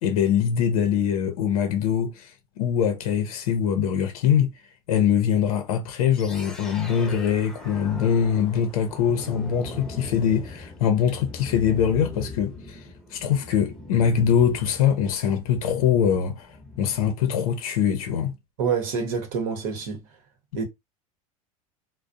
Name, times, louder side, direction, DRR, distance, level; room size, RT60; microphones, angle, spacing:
voice 1, 0.0-2.3 2.6-4.5 4.9-12.8 13.1-16.5 16.8-18.3, left 8 dB, 85° left, 0.6 m, -23 dB
sound 1, 6.1-17.3, left 2 dB, 5° left, 0.7 m, -40 dB
voice 2, 18.6-20.0 20.5-20.7, right 6 dB, 75° right, 0.8 m, -27 dB
2.4 x 2.0 x 2.5 m
supercardioid pair, 110°, 18 cm